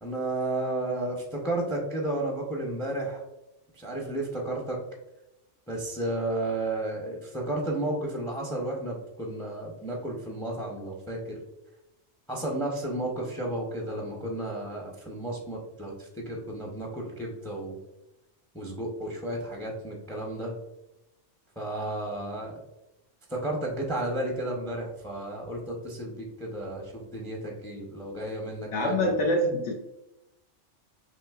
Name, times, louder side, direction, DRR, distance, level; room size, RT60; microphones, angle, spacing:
voice 1, 0.0-3.2 3.8-4.8 5.7-11.4 12.3-17.8 18.5-20.5 21.6-22.6 23.3-29.0, right 1 dB, 5° left, 0 dB, 0.5 m, -32 dB
voice 2, 28.7-29.7, left 1 dB, 70° left, 0 dB, 0.9 m, -25 dB
6.0 x 2.7 x 2.3 m, 0.92 s
omnidirectional pair, 1.3 m